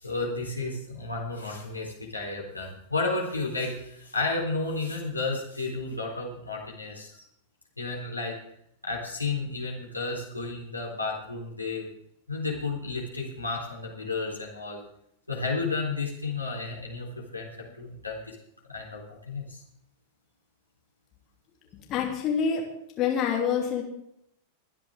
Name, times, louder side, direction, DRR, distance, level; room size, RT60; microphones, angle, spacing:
voice 1, 0.0-7.2 7.8-8.4 8.8-11.9 12.3-14.8 15.3-17.1 17.3-18.4 18.7-19.6, left 3 dB, 85° left, -2 dB, 3.9 m, -32 dB
voice 2, 21.7-22.7 23.0-23.8, left 7 dB, 35° left, 0 dB, 3.1 m, -26 dB
23.5 x 10.0 x 3.7 m, 0.74 s
figure-of-eight pair, 90°, 0 cm